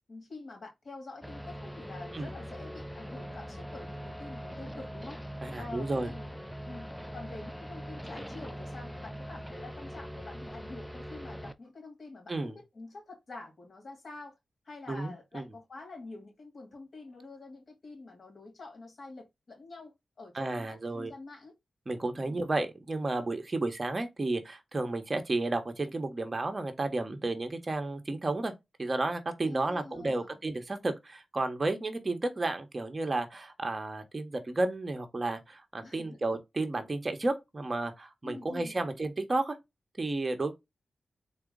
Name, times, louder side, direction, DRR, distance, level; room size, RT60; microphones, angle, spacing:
voice 1, 0.1-5.2 5.5-6.4 6.6-14.4 14.6-21.5 22.1-22.4 29.4-30.4 35.8-36.1 38.2-38.8, left 3 dB, 55° left, 2.4 m, -47 dB
sound 1, 1.2-11.5, equal, 5° left, 0.5 m, -42 dB
voice 2, 5.4-6.1 12.3-12.5 14.9-15.4 20.3-21.1 21.9-28.5 28.8-39.6 40.0-40.5, right 2 dB, 40° right, 1.0 m, -32 dB
4.0 x 2.3 x 3.7 m
cardioid pair, 45°, 0 cm